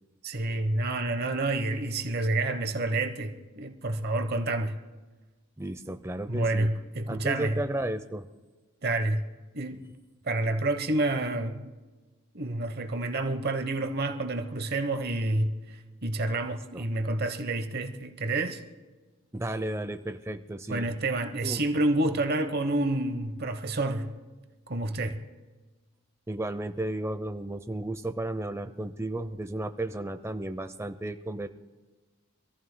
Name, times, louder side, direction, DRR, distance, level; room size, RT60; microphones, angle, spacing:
voice 1, 0.2-4.8 6.3-7.6 8.8-9.3 9.5-9.8 10.2-11.6 12.3-18.6 20.7-24.1 24.7-25.2, right 2 dB, 45° right, 0.9 m, -29 dB
voice 2, 5.6-6.7 7.1-8.3 16.7-16.8 19.3-20.9 21.4-21.6 26.3-31.5, right 1 dB, 10° right, 0.5 m, -33 dB
26.0 x 14.5 x 2.2 m
head